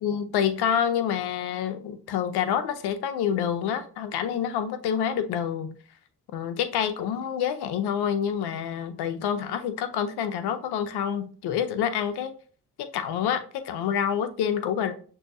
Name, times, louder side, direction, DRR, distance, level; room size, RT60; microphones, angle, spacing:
voice 1, 0.0-5.7 6.3-12.3 12.8-14.9, left 8 dB, 80° left, 0.7 m, -27 dB
6.2 x 2.7 x 2.6 m
supercardioid pair, 65°, 39 cm